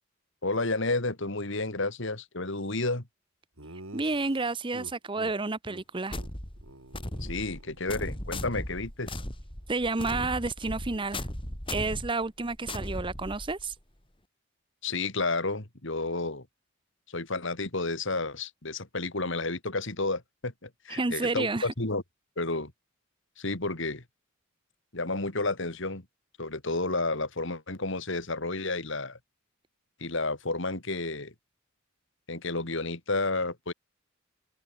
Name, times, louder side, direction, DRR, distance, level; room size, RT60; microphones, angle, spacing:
voice 1, 0.4-3.1 7.2-9.2 14.8-16.5 17.1-22.0 22.4-22.7 23.4-24.0 24.9-26.0 26.4-29.2 30.0-31.3 32.3-33.7, left 2 dB, 60° left, 3.0 m, -31 dB
Laughter, 3.6-5.3 5.7-5.8 6.1-6.3 6.6-8.1, right 1 dB, 85° right, 5.0 m, -48 dB
voice 2, 3.9-6.2 9.7-11.3 11.7-13.7 20.9-21.7, right 3 dB, 25° right, 0.8 m, -30 dB
sound 1, 6.1-13.8, left 1 dB, 25° left, 6.4 m, -37 dB
open air
head